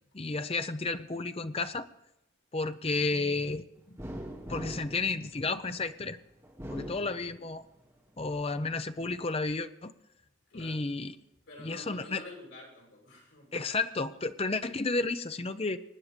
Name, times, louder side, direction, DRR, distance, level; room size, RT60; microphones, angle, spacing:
voice 1, 0.1-1.9 2.5-3.6 4.5-6.2 6.7-7.6 8.2-9.9 10.5-11.1 11.6-12.2 13.5-15.8, left 3 dB, 30° left, 11 dB, 0.6 m, -32 dB
sound 1, 4.0-5.9 6.4-7.8 8.2-9.1, equal, 15° right, 2.4 m, -43 dB
voice 2, 10.5-10.8 11.5-13.7, left 2 dB, 65° left, -3 dB, 6.5 m, -48 dB
24.5 x 9.6 x 5.1 m, 0.85 s
head